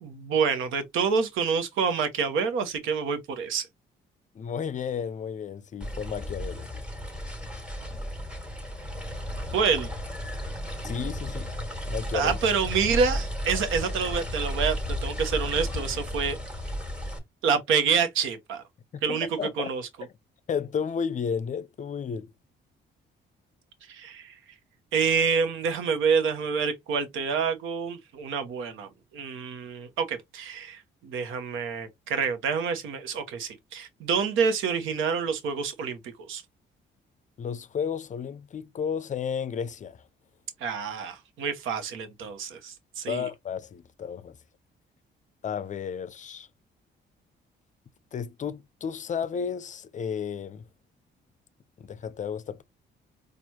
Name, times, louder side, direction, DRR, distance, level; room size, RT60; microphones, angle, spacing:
voice 1, 0.0-3.7 9.5-9.9 12.1-16.4 17.4-18.6 19.0-19.8 23.9-24.3 24.9-36.4 40.6-43.3, right 6 dB, 90° right, 0.9 m, -27 dB
voice 2, 4.4-6.7 10.8-11.5 11.9-12.3 19.1-19.7 20.5-22.3 37.4-40.0 43.1-44.4 45.4-46.5 48.1-50.6 51.8-52.6, left 7 dB, 40° left, 0.4 m, -32 dB
sound 1, 5.8-17.2, equal, 5° right, 1.5 m, -33 dB
4.4 x 2.4 x 2.8 m
cardioid pair, 90°, 20 cm